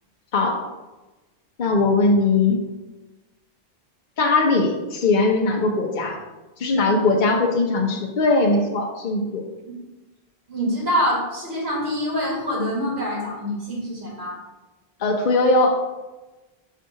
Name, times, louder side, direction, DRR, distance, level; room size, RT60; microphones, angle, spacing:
voice 1, 1.6-2.6 4.2-6.2 6.6-9.4 15.0-15.8, left 3 dB, 55° left, 1 dB, 0.8 m, -20 dB
voice 2, 6.8-7.2 10.5-14.4, equal, 90° right, -5 dB, 2.0 m, -25 dB
6.2 x 2.7 x 5.5 m, 1.1 s
omnidirectional pair, 1.0 m